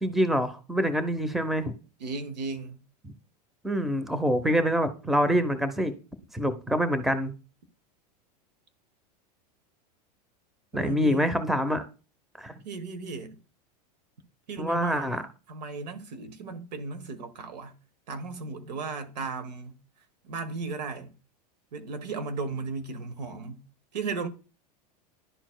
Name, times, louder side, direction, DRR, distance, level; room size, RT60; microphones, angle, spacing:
voice 1, 0.0-1.7 3.0-3.1 3.6-5.9 6.3-7.3 10.7-11.8 12.4-12.5 14.6-15.2, equal, ahead, 0.7 m, -26 dB
voice 2, 2.0-2.8 10.7-11.3 12.6-13.4 14.5-17.7 18.1-19.7 20.2-21.1 21.7-23.6 23.9-24.3, right 4 dB, 85° right, 1.2 m, -35 dB
11.0 x 4.4 x 2.2 m
hypercardioid pair, 110°, 21 cm